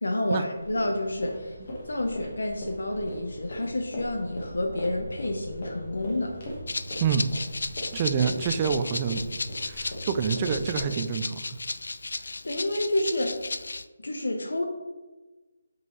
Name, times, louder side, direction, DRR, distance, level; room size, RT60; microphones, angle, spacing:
voice 1, 0.0-1.6 1.9-6.4 12.1-13.6 14.0-14.7, left 1 dB, 90° left, 3 dB, 0.9 m, -29 dB
sound 1, 0.5-10.8, left 1 dB, 35° left, 1.4 m, -39 dB
Rattle (instrument), 6.7-13.8, left 3 dB, 75° left, 0.3 m, -35 dB
voice 2, 7.9-9.2 9.6-11.4, right 7 dB, 20° right, 9 dB, 0.3 m, -27 dB
7.9 x 5.3 x 3.2 m, 1.2 s
hypercardioid pair, 175°, 0 cm